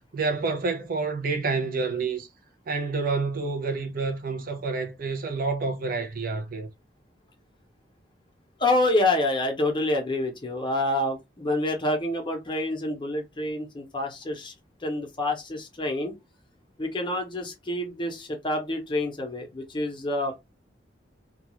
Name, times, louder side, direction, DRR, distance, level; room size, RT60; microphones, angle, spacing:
voice 1, 0.1-2.3 2.7-6.7, right 4 dB, 50° right, 0.6 m, -28 dB
voice 2, 8.6-14.5 14.8-16.1 16.8-20.4, left 1 dB, 25° left, 0.7 m, -27 dB
2.3 x 2.3 x 3.0 m
head